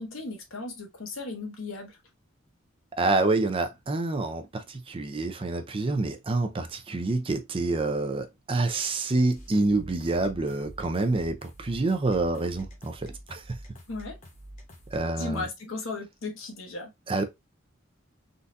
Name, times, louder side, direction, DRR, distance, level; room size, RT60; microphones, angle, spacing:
voice 1, 0.0-2.0 13.9-14.2 15.2-16.9, left 3 dB, 75° left, 1.0 m, -36 dB
voice 2, 3.0-13.4 14.9-15.4 17.1-17.2, right 2 dB, 25° right, 0.4 m, -27 dB
sound 1, 9.3-15.0, equal, 40° left, 1.0 m, -47 dB
3.8 x 2.3 x 2.5 m
head